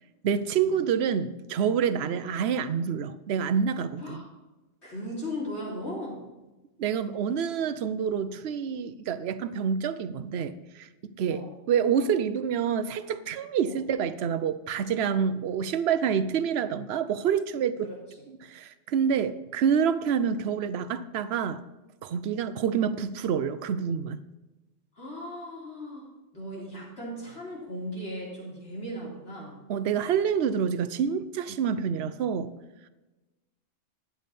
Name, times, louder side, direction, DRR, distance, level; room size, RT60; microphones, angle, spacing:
voice 1, 0.2-4.2 6.8-10.5 10.8-11.4 11.7-17.9 18.3-21.6 22.0-24.2 29.7-32.5, right 7 dB, 60° right, 13 dB, 0.9 m, -27 dB
voice 2, 4.8-6.2 11.3-11.5 13.7-13.8 17.8-18.0 25.0-26.1 26.3-29.6, equal, 60° left, -4 dB, 3.9 m, -37 dB
11.5 x 8.9 x 4.2 m, 1.1 s
omnidirectional pair, 1.3 m